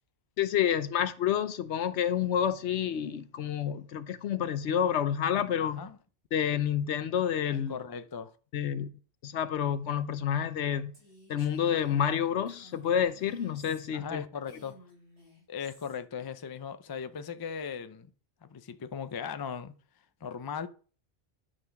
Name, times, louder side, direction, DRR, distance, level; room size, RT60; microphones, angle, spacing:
voice 1, 0.4-5.8 6.3-7.8 8.5-8.9 9.2-10.9 11.3-14.3, left 9 dB, 75° left, 1.0 m, -29 dB
voice 2, 5.6-5.9 7.5-8.3 13.9-14.8 15.5-18.1 18.4-19.7 20.2-20.7, left 7 dB, 35° left, 0.4 m, -38 dB
Female speech woman speaking, 10.9-14.1 14.4-16.0, right 1 dB, 65° right, 5.3 m, -57 dB
11.0 x 4.2 x 5.8 m
omnidirectional pair, 1.2 m